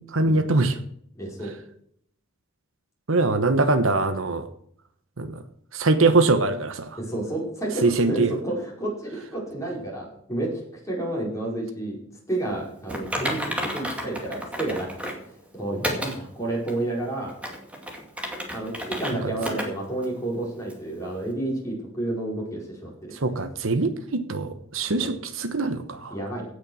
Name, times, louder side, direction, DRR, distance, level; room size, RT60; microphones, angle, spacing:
voice 1, 0.1-0.8 3.1-4.4 5.2-5.4 5.7-7.0 7.8-8.3 23.2-26.2, right 3 dB, 65° right, 10 dB, 1.0 m, -22 dB
voice 2, 1.2-1.5 7.0-10.5 10.8-12.0 12.3-14.9 15.2-17.3 18.5-23.2 25.0-25.1 26.1-26.5, right 2 dB, 15° left, -3 dB, 5.1 m, -30 dB
Typing, 12.9-15.2 15.8-16.2 16.7-16.8 17.3-19.1 19.4-19.7 20.0-20.1 20.7-20.8, equal, 5° right, 2.3 m, -31 dB
16.5 x 6.5 x 6.3 m, 0.67 s
head